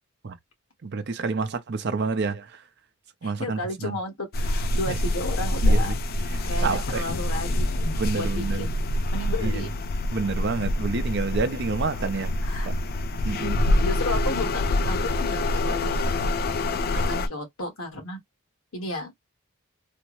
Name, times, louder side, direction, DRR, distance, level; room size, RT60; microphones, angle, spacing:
voice 1, 0.8-2.6 3.2-3.9 4.9-5.0 5.6-6.0 6.3-7.1 7.9-8.7 9.4-9.6 10.1-12.4 12.6-12.7 13.2-13.7, right 4 dB, 50° right, 0.5 m, -29 dB
voice 2, 3.2-5.9 6.4-8.7 9.1-9.7 12.4-12.7 13.8-18.2 18.7-19.2, left 2 dB, 80° left, 1.4 m, -33 dB
sound 1, 4.3-17.3, left 1 dB, 45° left, 0.4 m, -25 dB
3.3 x 2.0 x 3.0 m
head